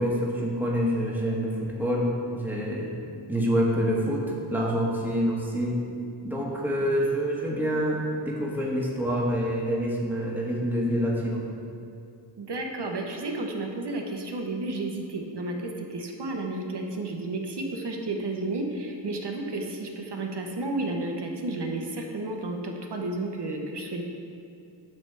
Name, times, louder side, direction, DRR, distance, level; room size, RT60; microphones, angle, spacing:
voice 1, 0.0-2.9 3.3-5.8 6.2-11.4, equal, 5° right, -4 dB, 1.5 m, -27 dB
voice 2, 12.4-24.0, right 2 dB, 60° right, 2 dB, 1.0 m, -32 dB
9.4 x 3.4 x 6.7 m, 2.6 s
cardioid pair, 60°, 45 cm